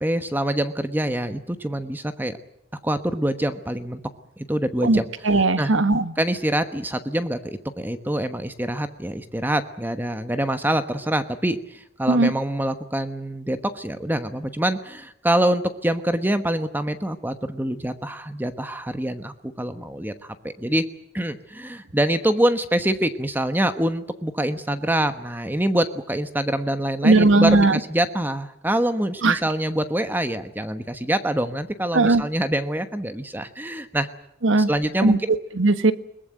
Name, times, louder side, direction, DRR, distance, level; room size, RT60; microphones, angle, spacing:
voice 1, 0.0-2.4 2.8-4.0 4.5-5.1 5.6-5.7 6.2-20.8 21.1-34.1 34.6-35.3, right 1 dB, 10° right, 9 dB, 1.1 m, -25 dB
voice 2, 5.2-6.1 12.1-12.3 27.0-27.8 29.2-29.4 31.9-32.2 34.4-34.7 35.0-35.2 35.6-35.9, right 2 dB, 80° right, 12 dB, 1.3 m, -17 dB
22.0 x 20.0 x 9.2 m, 0.76 s
head